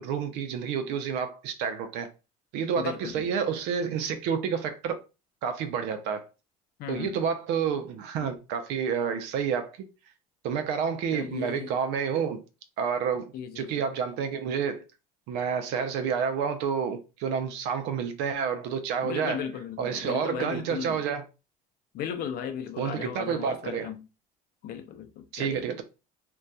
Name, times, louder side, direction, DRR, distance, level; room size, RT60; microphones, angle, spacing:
voice 1, 0.0-2.1 2.5-5.0 5.4-6.3 6.9-9.9 10.4-12.4 12.8-14.8 15.3-19.5 19.8-21.2 22.8-23.9 25.3-25.8, right 7 dB, 75° right, 0.5 m, -29 dB
voice 2, 2.8-3.3 6.8-7.2 11.1-11.7 13.3-13.7 19.0-21.0 21.9-24.1 24.6-25.7, left 8 dB, 60° left, 0.5 m, -36 dB
2.6 x 2.2 x 2.2 m
supercardioid pair, 95°, 18 cm